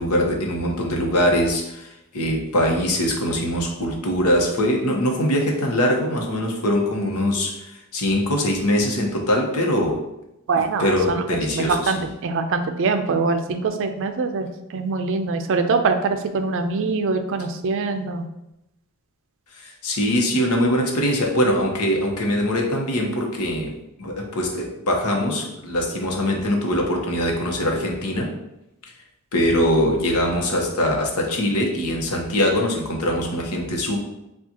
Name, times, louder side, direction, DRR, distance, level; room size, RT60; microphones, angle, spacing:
voice 1, 0.0-10.0 10.8-12.0 19.5-23.7 24.0-28.3 29.3-34.1, equal, 85° left, 1 dB, 0.9 m, -22 dB
voice 2, 10.5-18.3, right 4 dB, 60° right, 7 dB, 0.4 m, -23 dB
7.1 x 2.4 x 2.8 m, 0.89 s
head